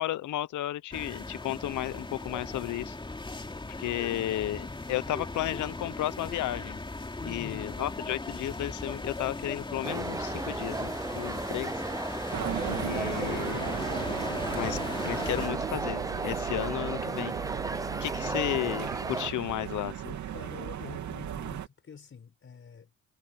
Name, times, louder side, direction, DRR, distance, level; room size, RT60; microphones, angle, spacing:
voice 1, 0.0-3.0 3.8-6.8 7.2-10.9 11.2-11.7 12.6-13.7 14.5-17.3 18.0-20.2, left 14 dB, 75° left, 1.0 m, -33 dB
sound 1, 0.9-15.5, left 2 dB, 15° left, 2.9 m, -38 dB
voice 2, 4.0-4.3 7.2-7.7 18.2-18.5 20.3-22.9, left 6 dB, 45° left, 4.7 m, -47 dB
sound 2, 9.8-19.3, right 3 dB, 10° right, 0.6 m, -35 dB
sound 3, 12.3-21.7, right 10 dB, 70° right, 2.9 m, -36 dB
cardioid pair, 90°, 30 cm